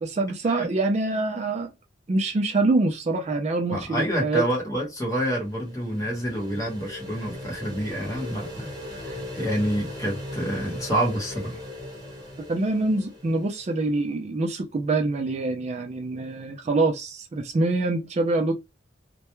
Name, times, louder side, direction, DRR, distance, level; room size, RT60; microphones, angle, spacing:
voice 1, 0.0-1.7 2.1-4.4 12.5-18.5, right 2 dB, 35° right, 0.3 m, -25 dB
voice 2, 3.7-8.7 9.0-11.6, equal, 15° left, 0.9 m, -28 dB
sound 1, 5.4-13.9, left 1 dB, 20° right, 1.0 m, -39 dB
2.2 x 2.1 x 2.9 m
head